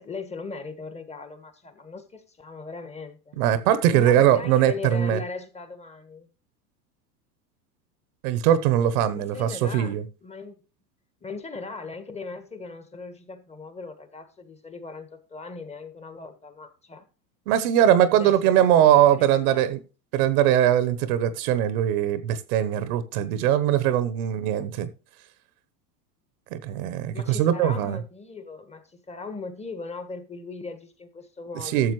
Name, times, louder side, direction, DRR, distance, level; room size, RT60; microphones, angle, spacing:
voice 1, 0.0-3.4 3.9-6.3 9.1-10.6 11.2-17.1 18.1-19.7 27.1-31.9, left 4 dB, 15° left, 1.3 m, -39 dB
voice 2, 3.4-5.2 8.2-10.0 17.5-19.8 20.1-24.9 26.5-28.0 31.6-31.9, right 11 dB, 60° right, 1.1 m, -21 dB
12.5 x 7.1 x 3.1 m
hypercardioid pair, 110°, 50 cm